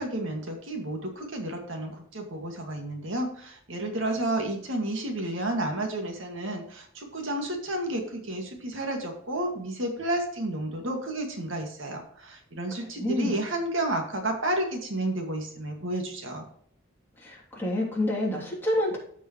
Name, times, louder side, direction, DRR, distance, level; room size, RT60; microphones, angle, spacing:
voice 1, 0.0-16.4, right 1 dB, 65° right, 3 dB, 2.0 m, -31 dB
voice 2, 13.0-13.4 17.2-19.0, left 1 dB, 10° left, -4 dB, 3.1 m, -28 dB
14.5 x 5.3 x 3.1 m, 0.63 s
head